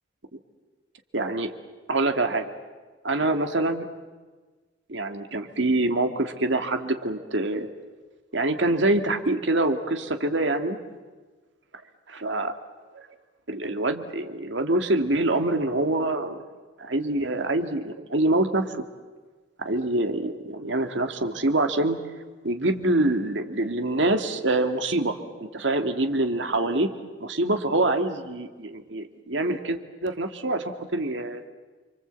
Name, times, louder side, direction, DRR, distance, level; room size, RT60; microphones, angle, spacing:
voice 1, 1.1-1.5 1.9-2.5 3.0-3.9 4.9-7.7 8.3-10.8 12.1-12.5 12.9-13.1 13.5-16.4 16.8-18.8 19.6-22.0 22.4-26.9 27.2-31.4, right 2 dB, 75° right, 7 dB, 2.0 m, -25 dB
29.0 x 24.0 x 8.1 m, 1.4 s
head